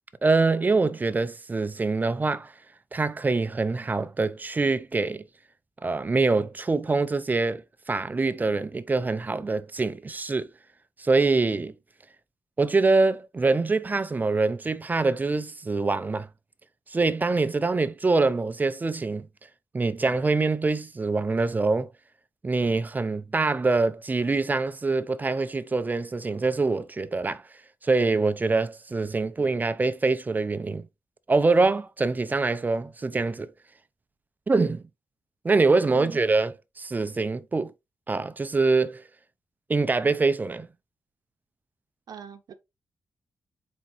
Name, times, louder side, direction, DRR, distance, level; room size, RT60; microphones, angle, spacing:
voice 1, 0.2-2.5 2.9-5.2 5.8-10.5 11.0-11.7 12.6-16.3 16.9-19.3 19.7-21.9 22.4-27.4 27.8-30.9 31.3-33.5 34.5-34.8 35.4-37.7 38.1-39.0 39.7-40.7, right 3 dB, 25° right, 0.4 m, -24 dB
voice 2, 42.1-42.5, right 8 dB, 75° right, 0.8 m, -41 dB
4.3 x 3.6 x 2.9 m
cardioid pair, 90°, 7 cm